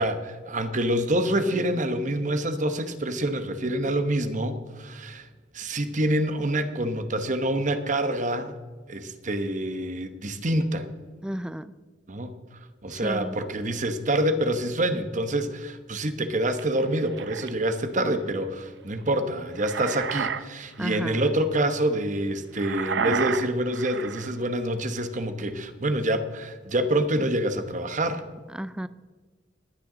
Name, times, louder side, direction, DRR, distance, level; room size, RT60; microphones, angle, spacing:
voice 1, 0.0-5.3 5.5-8.6 8.9-10.9 12.1-12.4 12.8-28.2, right 1 dB, 45° right, 9 dB, 1.1 m, -26 dB
voice 2, 11.2-11.7 12.9-13.4 20.8-21.3 28.5-28.9, equal, 5° right, 14 dB, 0.4 m, -33 dB
sound 1, 16.6-17.5 19.3-20.4 20.8-21.0 22.5-24.3, right 6 dB, 70° right, 0.6 m, -31 dB
20.5 x 9.2 x 3.9 m, 1.4 s
head